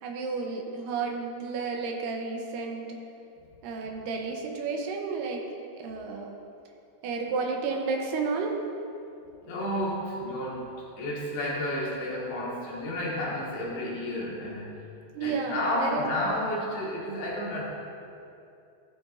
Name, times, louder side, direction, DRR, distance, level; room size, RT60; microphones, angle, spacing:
voice 1, 0.0-3.0 3.6-5.5 5.8-6.4 7.0-8.6 15.1-16.1, right 4 dB, 75° right, 1 dB, 2.1 m, -32 dB
voice 2, 9.4-10.6 11.0-14.7 15.2-17.6, left 1 dB, 80° left, -5 dB, 4.2 m, -31 dB
15.5 x 9.9 x 2.7 m, 2.6 s
omnidirectional pair, 5.0 m